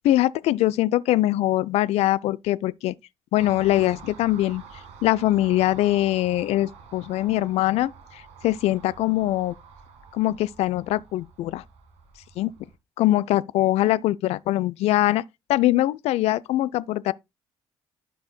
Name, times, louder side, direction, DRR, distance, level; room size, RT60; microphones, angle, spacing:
voice 1, 0.0-2.9 3.3-4.6 5.0-7.9 8.4-9.6 10.1-11.6 12.4-12.5 13.0-15.2 15.5-17.1, left 15 dB, 60° left, 0.4 m, -22 dB
Car passing by, 3.4-12.8, right 6 dB, 65° right, 1.9 m, -47 dB
12.0 x 5.5 x 2.2 m
figure-of-eight pair, 45°, 12 cm